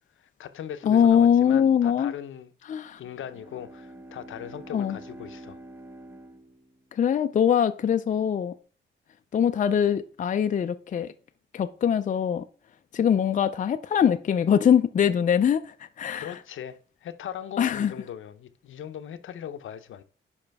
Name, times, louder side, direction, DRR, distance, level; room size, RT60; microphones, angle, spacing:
voice 1, 0.2-2.5 3.0-5.6 16.1-20.0, left 9 dB, 80° left, 0.7 m, -39 dB
voice 2, 0.8-2.1 2.7-3.0 4.7-5.0 6.9-8.5 9.3-11.1 11.5-12.4 12.9-16.3 17.6-17.9, left 8 dB, 40° left, 0.4 m, -22 dB
Bowed string instrument, 2.9-7.3, right 1 dB, 10° right, 0.7 m, -46 dB
10.5 x 5.0 x 3.5 m
cardioid pair, 125°, 20 cm